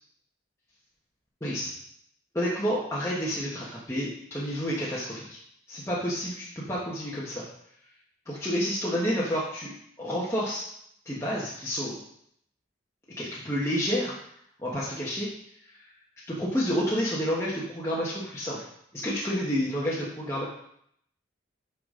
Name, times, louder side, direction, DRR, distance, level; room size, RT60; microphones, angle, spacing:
voice 1, 1.4-1.7 2.3-5.4 5.7-7.4 8.3-9.7 10.0-10.6 11.0-11.9 13.2-14.1 14.6-15.3 16.3-18.6 18.9-20.4, equal, 15° left, -7 dB, 1.2 m, -29 dB
8.5 x 6.0 x 3.8 m, 0.70 s
head